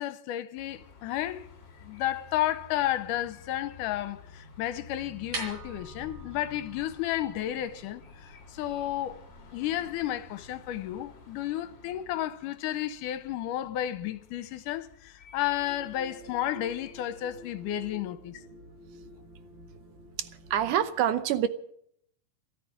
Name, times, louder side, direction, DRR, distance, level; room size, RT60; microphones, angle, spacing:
voice 1, 0.0-1.5 1.8-8.0 8.5-9.2 9.5-18.4, left 12 dB, 80° left, 2.3 m, -32 dB
sound 1, 0.5-17.9, left 5 dB, 40° left, 2.2 m, -53 dB
sound 2, 5.0-11.0, right 2 dB, 55° right, 5.1 m, -45 dB
sound 3, 15.6-20.8, left 1 dB, 20° right, 2.7 m, -50 dB
voice 2, 20.2-21.5, right 10 dB, 75° right, 2.3 m, -26 dB
14.0 x 13.5 x 7.4 m
omnidirectional pair, 3.8 m